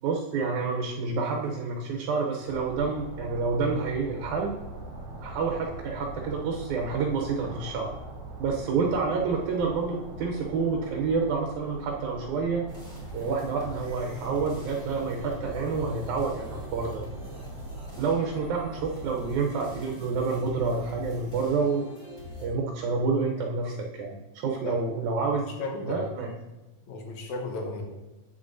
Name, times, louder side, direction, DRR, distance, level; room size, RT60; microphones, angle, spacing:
voice 1, 0.0-4.5 5.2-7.9 8.4-12.6 13.1-17.0 18.0-21.8 22.4-25.5 25.8-26.3, right 4 dB, 80° right, 0 dB, 2.1 m, -28 dB
sound 1, 2.5-19.4, right 2 dB, 55° right, 2.0 m, -42 dB
sound 2, 12.7-22.5, left 1 dB, 20° left, 2.5 m, -43 dB
voice 2, 25.6-26.1 26.9-27.8, left 2 dB, 75° left, 2 dB, 2.3 m, -34 dB
8.1 x 7.3 x 2.6 m, 1.1 s
omnidirectional pair, 3.3 m